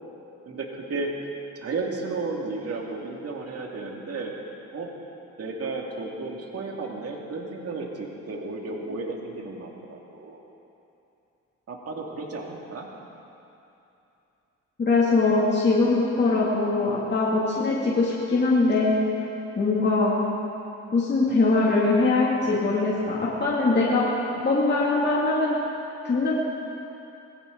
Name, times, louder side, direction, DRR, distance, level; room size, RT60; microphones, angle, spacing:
voice 1, 0.5-1.1 1.6-4.3 4.7-4.9 5.4-10.4 11.7-12.9, right 3 dB, 50° right, 0 dB, 2.4 m, -33 dB
voice 2, 14.8-19.0 19.5-20.2 20.9-24.1 24.4-25.6 26.0-26.4, left 3 dB, 35° left, -6 dB, 2.7 m, -22 dB
20.0 x 15.5 x 4.0 m, 2.8 s
cardioid pair, 90°, 30 cm